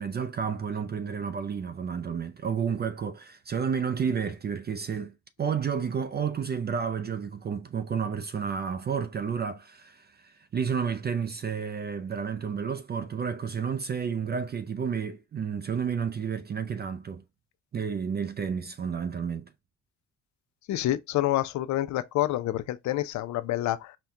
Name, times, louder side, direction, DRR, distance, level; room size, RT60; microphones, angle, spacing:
voice 1, 0.0-5.1 5.4-17.2 17.7-19.5, right 6 dB, 35° right, 0.4 m, -31 dB
voice 2, 20.7-24.0, left 14 dB, 70° left, 0.5 m, -28 dB
4.2 x 2.2 x 3.6 m
cardioid pair, 90°, 30 cm